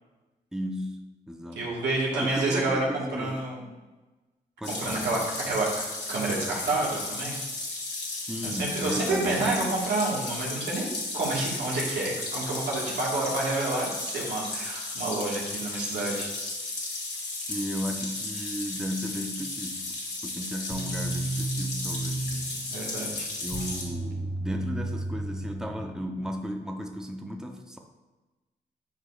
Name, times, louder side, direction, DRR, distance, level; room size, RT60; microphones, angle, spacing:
voice 1, 0.5-1.7 2.1-3.5 4.6-5.3 8.1-9.8 17.5-22.5 23.4-27.8, equal, 5° right, 3 dB, 0.8 m, -35 dB
voice 2, 1.5-2.8 3.2-3.6 4.8-5.2 5.5-5.7 6.1-7.4 8.4-10.9 11.1-16.3 22.7-23.3, right 2 dB, 75° right, -4 dB, 1.9 m, -29 dB
sound 1, 4.6-23.8, left 2 dB, 65° left, 2.2 m, -34 dB
sound 2, 20.7-26.3, right 2 dB, 50° right, 2.0 m, -33 dB
9.2 x 4.8 x 2.5 m, 1.2 s
supercardioid pair, 40°, 19 cm